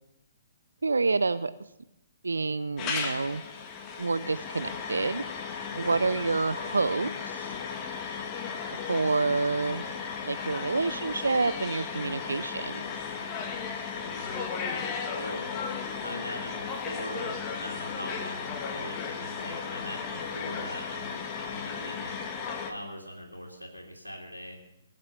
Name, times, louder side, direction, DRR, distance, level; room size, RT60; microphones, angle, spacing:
voice 1, 0.8-1.5 2.2-3.4 4.0-7.5 8.9-9.8 10.3-12.8, right 3 dB, 70° right, 15 dB, 0.5 m, -28 dB
sound 1, 2.8-22.7, left 6 dB, 25° left, 1.7 m, -35 dB
voice 2, 5.7-6.1 14.0-15.6 16.0-22.3 22.7-24.6, equal, 85° left, -3 dB, 2.7 m, -41 dB
21.5 x 7.6 x 6.9 m, 0.90 s
figure-of-eight pair, 125°, 0 cm